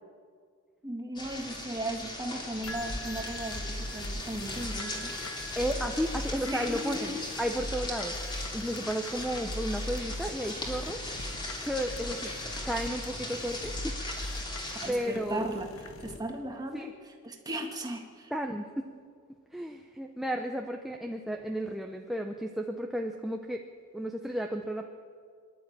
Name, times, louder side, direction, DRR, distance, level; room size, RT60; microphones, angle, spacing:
voice 1, 0.8-5.1 6.5-7.2 14.0-14.1 14.8-15.7 16.0-18.3, right 1 dB, 20° right, 3 dB, 1.9 m, -37 dB
sound 1, 1.1-14.9, left 1 dB, 20° left, 3.2 m, -39 dB
sound 2, 2.6-16.2, left 1 dB, 70° left, 1.8 m, -40 dB
voice 2, 5.6-7.1 7.4-8.2 8.5-11.0 11.6-12.3 12.6-13.9 14.9-15.4 16.7-16.9 18.3-18.9 19.5-23.6 23.9-24.9, equal, ahead, 2 dB, 0.7 m, -33 dB
26.0 x 11.5 x 8.8 m, 2.1 s
head